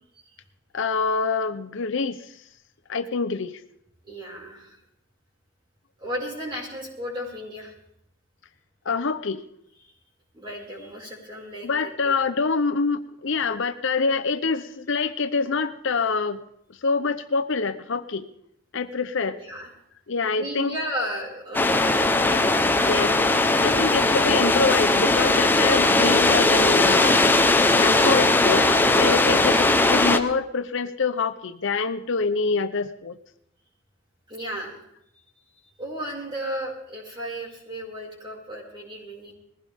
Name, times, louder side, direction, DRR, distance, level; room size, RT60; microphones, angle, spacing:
voice 1, 0.7-2.4 2.9-3.6 8.8-9.4 11.6-16.4 16.8-18.3 18.7-19.4 20.1-20.7 22.8-23.2 23.6-27.3 27.7-28.7 29.0-33.2, left 4 dB, 65° left, 9 dB, 0.8 m, -25 dB
voice 2, 4.0-4.8 6.0-7.7 9.8-9.9 10.3-12.1 19.3-19.7 20.4-22.9 23.3-24.1 29.3-29.6 34.3-34.9 35.8-39.3, equal, 25° right, -3 dB, 5.7 m, -35 dB
sound 1, 21.5-30.2, left 2 dB, 10° left, 0.9 m, -19 dB
21.0 x 16.0 x 3.6 m, 0.75 s
head